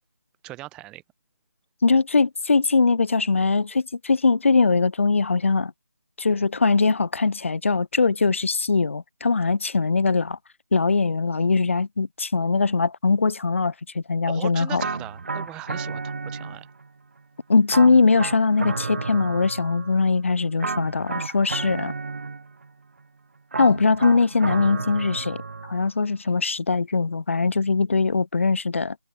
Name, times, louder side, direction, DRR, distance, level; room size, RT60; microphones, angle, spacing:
voice 1, 0.4-1.0 14.3-16.7, right 17 dB, 10° right, 5.9 m, -39 dB
voice 2, 1.8-5.7 6.2-10.4 10.7-14.8 17.5-21.9 23.6-29.0, left 4 dB, 40° left, 0.7 m, -21 dB
sound 1, 14.8-16.9 17.7-20.1 20.6-22.7 23.5-25.9, right 4 dB, 45° right, 3.4 m, -32 dB
figure-of-eight pair, 165°, 10 cm